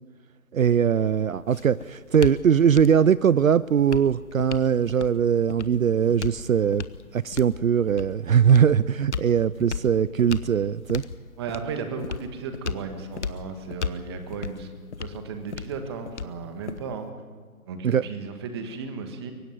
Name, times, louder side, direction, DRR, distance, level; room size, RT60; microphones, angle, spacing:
voice 1, 0.5-6.8 7.1-11.0 17.8-18.0, right 8 dB, 65° right, 19 dB, 0.6 m, -21 dB
sound 1, 1.1-17.1, left 6 dB, 50° left, 1.1 m, -37 dB
voice 2, 11.4-14.7 15.0-17.1 17.7-19.3, right 5 dB, 15° right, 7 dB, 1.5 m, -35 dB
23.5 x 17.5 x 9.3 m, 1.6 s
figure-of-eight pair, 155°, 44 cm